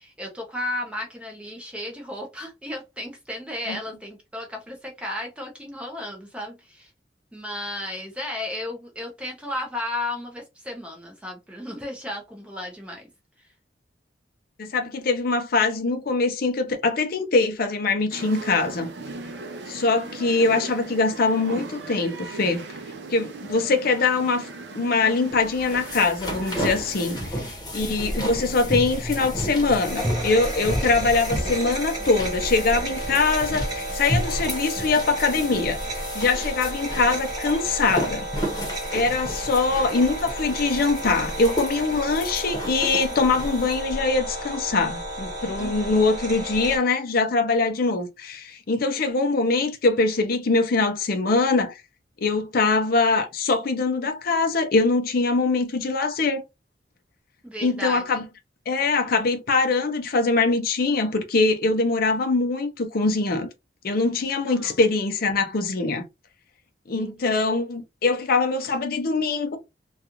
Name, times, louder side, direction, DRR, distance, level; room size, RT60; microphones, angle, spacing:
voice 1, 0.0-6.9 7.3-13.1 13.4-13.5 27.7-28.2 45.6-45.9 57.4-58.0 64.5-64.8 66.9-67.1, left 1 dB, 5° right, 0.5 m, -34 dB
voice 2, 14.6-18.9 19.7-22.6 23.1-24.5 24.7-35.8 36.1-38.3 38.9-51.8 52.2-56.4 57.6-58.2 58.7-63.5 63.8-66.0 66.9-69.6, left 3 dB, 55° left, 0.5 m, -23 dB
sound 1, 18.1-27.3, right 3 dB, 70° right, 0.5 m, -38 dB
sound 2, 25.4-43.8, equal, 20° left, 0.9 m, -33 dB
sound 3, 27.8-46.8, right 1 dB, 20° right, 1.1 m, -32 dB
2.4 x 2.3 x 2.8 m
head